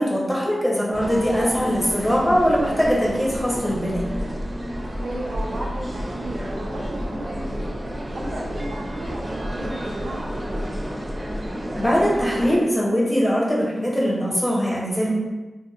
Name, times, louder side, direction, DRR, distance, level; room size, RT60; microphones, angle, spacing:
voice 1, 0.0-4.1 11.8-15.1, equal, 25° left, -5 dB, 0.8 m, -21 dB
sound 1, 0.9-12.6, equal, 25° right, 0.5 m, -30 dB
voice 2, 5.0-7.7 8.1-10.8, right 1 dB, 85° right, -3 dB, 0.5 m, -34 dB
2.7 x 2.1 x 2.4 m, 1.1 s
wide cardioid pair, 65°, 0 cm